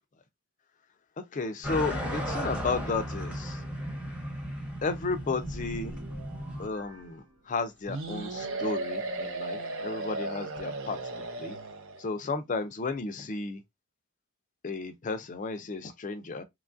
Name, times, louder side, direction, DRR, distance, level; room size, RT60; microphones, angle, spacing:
voice 1, 1.2-3.6 4.8-6.0 6.6-11.6 12.0-13.6 14.6-16.4, left 4 dB, 35° left, 0.4 m, -33 dB
sound 1, 1.6-6.7, equal, 5° right, 0.8 m, -35 dB
sound 2, 5.3-7.9, equal, 90° right, 1.0 m, -45 dB
sound 3, 7.9-12.1, right 2 dB, 60° right, 0.5 m, -35 dB
3.0 x 2.3 x 2.5 m
head